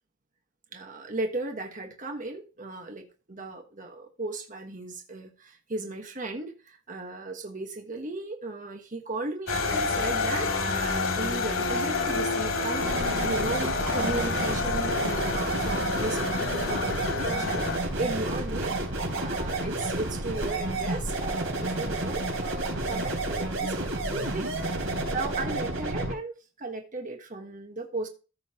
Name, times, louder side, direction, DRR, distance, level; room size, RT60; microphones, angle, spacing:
voice 1, 0.7-28.1, right 2 dB, 40° right, 1.3 m, -36 dB
sound 1, 9.5-17.8, left 4 dB, 90° left, 2.5 m, -28 dB
sound 2, 12.8-26.1, right 2 dB, 90° right, 3.7 m, -30 dB
14.0 x 5.7 x 2.9 m
head